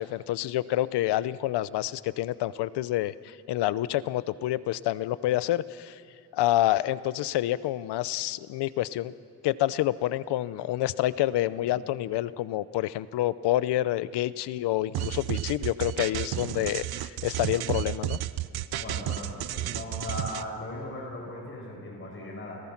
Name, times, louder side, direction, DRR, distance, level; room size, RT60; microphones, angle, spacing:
voice 1, 0.0-6.0 6.3-9.1 9.4-18.2, left 14 dB, 90° left, 17 dB, 0.7 m, -28 dB
sound 1, 14.9-20.4, right 14 dB, 65° right, 0.7 m, -32 dB
voice 2, 18.8-22.6, left 1 dB, 30° left, -2 dB, 7.5 m, -38 dB
30.0 x 19.0 x 5.9 m, 2.8 s
cardioid pair, 125°, 39 cm